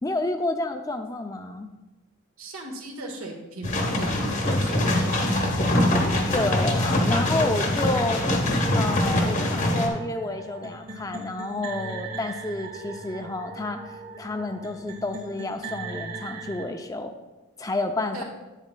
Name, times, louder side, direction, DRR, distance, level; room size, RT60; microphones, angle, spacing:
voice 1, 0.0-1.7 6.3-8.2 8.7-17.1 17.6-18.2, left 2 dB, 15° left, 6 dB, 0.4 m, -30 dB
voice 2, 2.4-6.1 18.1-18.2, right 1 dB, 85° right, 0 dB, 1.5 m, -38 dB
sound 1, 3.6-9.9, left 1 dB, 35° left, 0.9 m, -23 dB
sound 2, 8.6-16.6, right 3 dB, 40° right, 1.7 m, -39 dB
10.5 x 8.2 x 2.2 m, 1.1 s
head